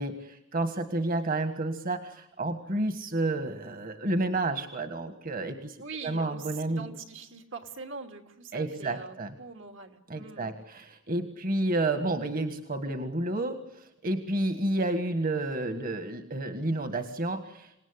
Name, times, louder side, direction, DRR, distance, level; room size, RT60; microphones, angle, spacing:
voice 1, 0.0-6.9 8.5-9.3 10.1-17.9, right 2 dB, 45° right, 8 dB, 1.7 m, -30 dB
voice 2, 5.7-10.5, right 4 dB, 75° right, 4 dB, 2.9 m, -43 dB
28.0 x 18.5 x 9.8 m, 0.89 s
head